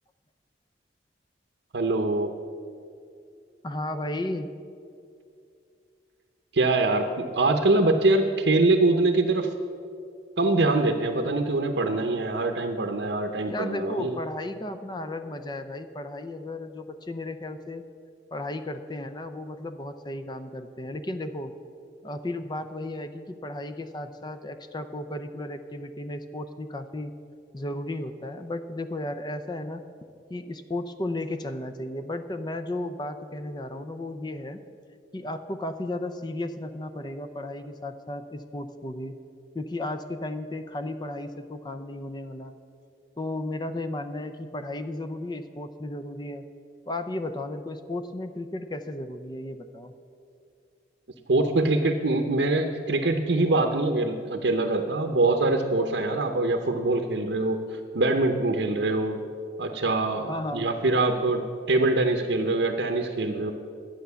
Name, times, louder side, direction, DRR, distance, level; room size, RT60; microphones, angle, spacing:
voice 1, 1.7-2.3 6.5-9.5 10.4-14.2 51.3-59.2 59.6-63.5, right 2 dB, 75° right, 4 dB, 0.8 m, -24 dB
voice 2, 3.6-4.5 13.5-17.8 18.3-21.5 22.0-27.1 27.5-29.8 30.3-34.6 35.1-39.2 39.5-42.6 43.2-46.4 46.9-49.9 60.3-60.7, left 1 dB, 25° left, 9 dB, 0.5 m, -34 dB
12.0 x 8.8 x 6.9 m, 2.5 s
head